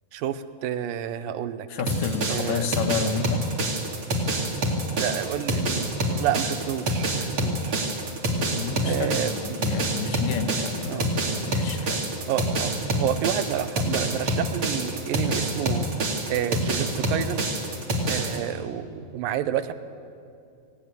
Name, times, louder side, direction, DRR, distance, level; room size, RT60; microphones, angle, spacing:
voice 1, 0.1-1.7 2.3-2.7 5.0-7.8 8.8-9.6 10.9-11.1 12.3-15.9 16.3-17.5 18.1-19.7, right 10 dB, 85° right, 12 dB, 2.5 m, -29 dB
voice 2, 1.7-3.4 8.5-12.1, left 6 dB, 75° left, 6 dB, 2.7 m, -30 dB
sound 1, 1.9-18.4, right 1 dB, 40° right, 2.9 m, -27 dB
19.0 x 17.0 x 9.1 m, 2.5 s
omnidirectional pair, 4.0 m